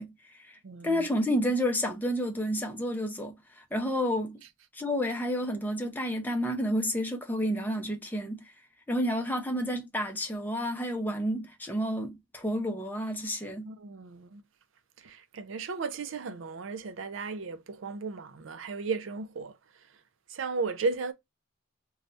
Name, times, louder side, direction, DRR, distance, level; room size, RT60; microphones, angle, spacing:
voice 1, 0.0-0.6 0.8-4.4 4.7-8.4 8.9-13.7, equal, 10° left, 0.6 m, -30 dB
voice 2, 0.6-1.1 13.6-14.4 15.0-20.0 20.3-21.1, right 4 dB, 75° right, 0.5 m, -35 dB
2.6 x 2.3 x 4.1 m
head